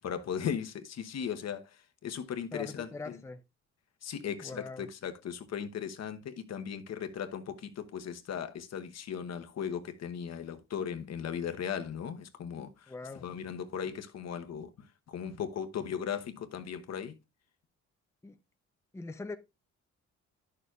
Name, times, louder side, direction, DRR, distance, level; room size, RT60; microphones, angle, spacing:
voice 1, 0.0-3.2 4.0-14.7 15.1-17.2, left 8 dB, 60° left, 1.0 m, -37 dB
voice 2, 2.5-3.4 4.4-4.9 12.9-13.3 18.2-18.4 18.9-19.4, left 3 dB, 10° left, 0.6 m, -42 dB
11.0 x 6.7 x 2.4 m
cardioid pair, 90°, 30 cm